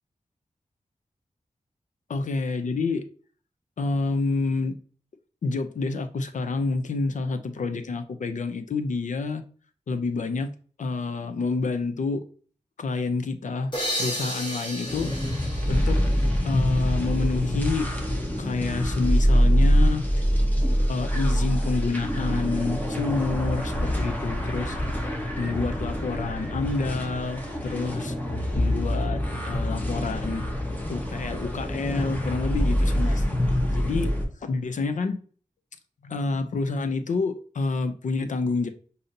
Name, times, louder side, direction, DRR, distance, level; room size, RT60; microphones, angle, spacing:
voice 1, 2.1-3.1 3.8-4.8 5.4-9.4 9.9-10.5 10.8-12.3 12.8-15.1 15.7-16.0 16.4-17.9 18.4-20.1 20.9-24.8 25.4-28.1 28.6-30.4 30.9-33.2 33.7-34.1 34.4-35.2 36.0-38.7, left 3 dB, 85° left, 0.5 m, -28 dB
sound 1, 13.7-17.3, equal, 40° left, 1.6 m, -34 dB
sound 2, 14.9-34.2, equal, 15° left, 1.0 m, -25 dB
6.4 x 2.7 x 2.7 m
wide cardioid pair, 100°, 13 cm